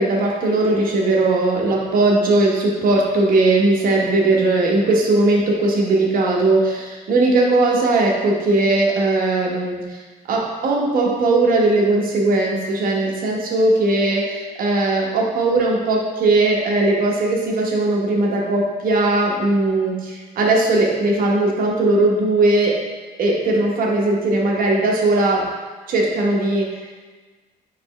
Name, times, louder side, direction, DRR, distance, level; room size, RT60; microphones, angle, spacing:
voice 1, 0.0-10.0 10.3-22.7 23.2-25.5 25.9-26.7, right 2 dB, 55° right, -2 dB, 1.0 m, -18 dB
4.4 x 3.0 x 4.0 m, 1.3 s
cardioid pair, 110°, 17 cm